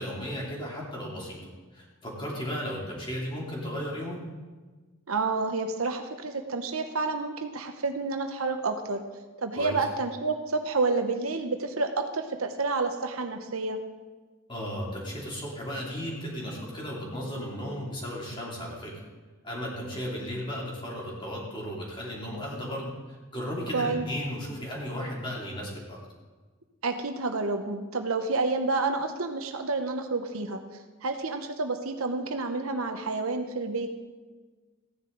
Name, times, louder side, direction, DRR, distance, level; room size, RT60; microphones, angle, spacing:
voice 1, 0.0-4.2 9.6-9.8 14.5-19.0 19.4-26.0, equal, 20° left, -3 dB, 3.0 m, -35 dB
voice 2, 5.1-9.0 9.4-13.8 23.7-24.0 26.8-30.6 31.0-33.9, right 3 dB, 75° right, 6 dB, 1.0 m, -29 dB
15.0 x 10.0 x 4.0 m, 1.3 s
head